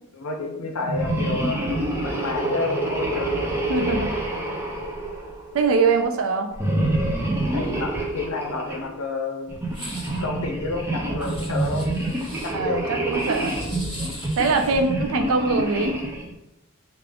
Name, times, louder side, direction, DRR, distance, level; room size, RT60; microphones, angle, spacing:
voice 1, 0.1-4.0 7.5-9.6 10.1-12.0 12.4-12.9, left 3 dB, 80° left, 3 dB, 0.5 m, -30 dB
sound 1, 0.8-5.7 6.5-8.9 9.5-16.3, right 1 dB, 10° right, 0.4 m, -27 dB
voice 2, 3.7-4.1 5.5-6.5 12.5-13.6 14.4-15.9, right 4 dB, 70° right, 5 dB, 0.4 m, -22 dB
sound 2, 9.7-10.2 11.2-12.5 13.1-14.9, left 1 dB, 25° left, 1.4 m, -40 dB
3.5 x 2.4 x 3.4 m, 0.90 s
head